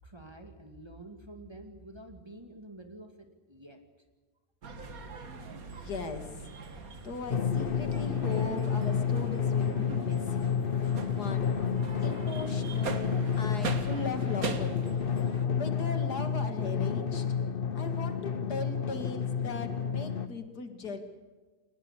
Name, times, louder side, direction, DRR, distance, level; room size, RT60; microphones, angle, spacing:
voice 1, 0.0-3.8, right 1 dB, 15° right, 5 dB, 2.3 m, -48 dB
sound 1, 4.6-15.5, right 4 dB, 60° right, 2.2 m, -41 dB
voice 2, 5.6-6.5 7.0-10.4 11.1-11.5 12.0-15.0 15.6-17.3 17.7-21.0, left 3 dB, 80° left, 7 dB, 2.8 m, -39 dB
Drum, 7.3-20.3, left 7 dB, 40° left, 1.0 m, -30 dB
23.0 x 19.5 x 8.5 m, 1.3 s
omnidirectional pair, 1.7 m